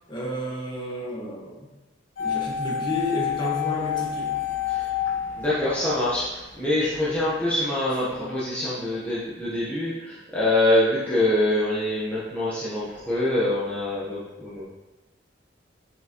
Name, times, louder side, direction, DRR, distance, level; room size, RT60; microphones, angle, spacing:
voice 1, 0.1-1.7 2.2-4.4 8.2-8.3, left 1 dB, 25° left, -4 dB, 1.5 m, -31 dB
sound 1, 2.2-6.3 6.5-6.6, left 10 dB, 85° left, 1.0 m, -28 dB
voice 2, 5.3-14.6, left 1 dB, 10° left, -10 dB, 1.1 m, -25 dB
5.9 x 5.9 x 3.0 m, 1.1 s
head